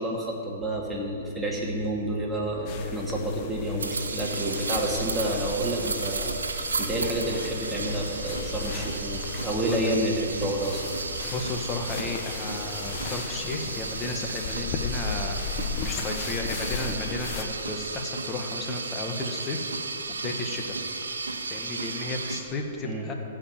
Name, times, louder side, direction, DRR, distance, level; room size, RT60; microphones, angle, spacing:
voice 1, 0.0-10.8 22.8-23.1, right 1 dB, 10° right, -4 dB, 2.4 m, -29 dB
sound 1, 0.6-11.2, right 5 dB, 55° right, 1.0 m, -45 dB
sound 2, 2.7-17.4, left 5 dB, 40° left, 1.0 m, -36 dB
sound 3, 3.8-22.4, right 3 dB, 90° right, 1.0 m, -34 dB
voice 2, 11.3-19.7 20.1-20.8 21.5-23.1, left 2 dB, 25° left, 3 dB, 1.6 m, -33 dB
15.0 x 5.2 x 7.5 m, 2.6 s
hypercardioid pair, 120°, 0 cm